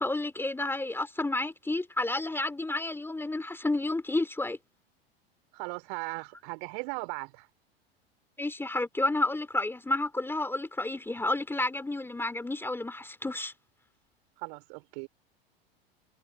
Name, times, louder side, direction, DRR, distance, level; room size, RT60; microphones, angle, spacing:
voice 1, 0.0-4.6 8.4-13.5, left 2 dB, 5° left, 2.8 m, -31 dB
voice 2, 5.5-7.5 14.4-15.1, right 35 dB, 55° right, 4.9 m, -38 dB
figure-of-eight pair, 85°, 30 cm